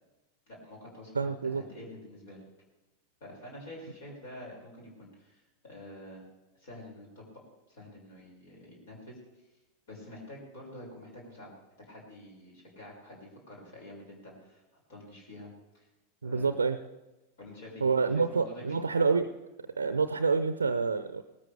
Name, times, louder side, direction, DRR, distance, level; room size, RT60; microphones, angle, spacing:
voice 1, 0.5-2.4 3.2-6.2 6.6-7.3 7.7-9.2 9.9-11.5 11.8-14.6 14.9-15.9 16.2-16.5 17.4-17.9 18.3-18.8, left 1 dB, 55° left, -2 dB, 5.9 m, -48 dB
voice 2, 1.1-1.6 16.2-16.8 17.8-19.3 19.8-21.2, right 4 dB, 75° right, 12 dB, 0.6 m, -27 dB
19.0 x 13.5 x 3.5 m, 1.1 s
figure-of-eight pair, 90°, 0 cm